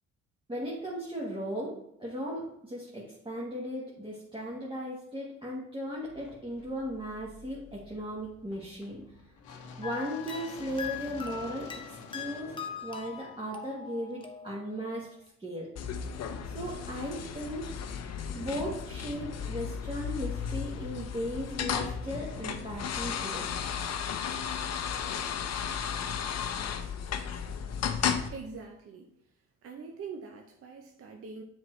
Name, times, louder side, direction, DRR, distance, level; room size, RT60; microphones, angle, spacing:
voice 1, 0.5-9.0 9.8-15.1 15.4-15.7 16.4-17.7 18.3-23.5, equal, 15° right, -5 dB, 1.3 m, -37 dB
sound 1, 6.0-14.1, left 4 dB, 85° left, 0.9 m, -50 dB
sound 2, 9.8-15.0, left 7 dB, 15° left, 0.8 m, -42 dB
sound 3, 15.8-28.3, left 7 dB, 55° left, 0.6 m, -34 dB
voice 2, 28.3-29.1 29.6-31.4, right 5 dB, 50° right, 3 dB, 0.7 m, -43 dB
7.1 x 4.5 x 3.2 m, 0.79 s
cardioid pair, 90°, 30 cm